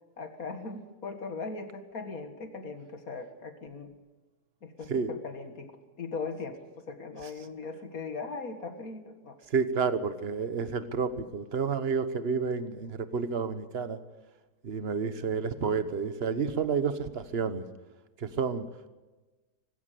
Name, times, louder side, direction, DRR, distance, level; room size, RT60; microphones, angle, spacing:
voice 1, 0.2-3.9 4.6-9.4 15.8-15.9, left 4 dB, 60° left, 7 dB, 2.2 m, -39 dB
voice 2, 9.5-14.0 14.6-17.6 18.2-18.7, right 5 dB, 40° right, 11 dB, 1.4 m, -30 dB
19.0 x 17.0 x 8.5 m, 1.2 s
omnidirectional pair, 1.7 m